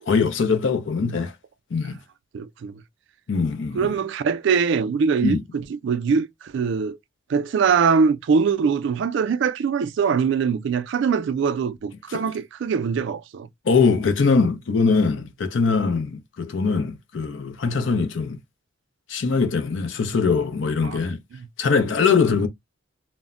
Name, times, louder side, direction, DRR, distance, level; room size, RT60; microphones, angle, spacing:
voice 1, 0.1-1.3 1.7-2.0 3.3-3.9 5.2-5.4 12.1-12.3 13.7-18.4 19.1-21.2 21.6-22.5, left 5 dB, 70° left, 0.5 m, -22 dB
voice 2, 2.3-2.8 3.7-7.0 7.3-13.5 20.8-21.0 21.3-21.5, right 6 dB, 65° right, 0.3 m, -22 dB
2.1 x 2.0 x 3.6 m
head